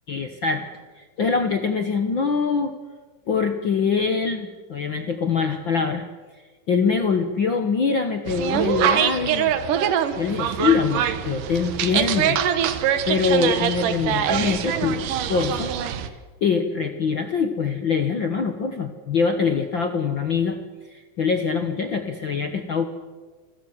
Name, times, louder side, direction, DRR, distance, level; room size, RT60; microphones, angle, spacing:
voice 1, 0.1-0.7 1.0-2.7 3.3-6.0 6.7-9.5 10.2-12.4 13.1-15.0 15.3-15.7 16.4-20.6 20.9-22.9, left 5 dB, 65° left, 7 dB, 1.1 m, -23 dB
sound 1, 8.3-16.1, right 9 dB, 70° right, 2.7 m, -23 dB
29.0 x 22.0 x 7.5 m, 1.4 s
omnidirectional pair, 4.2 m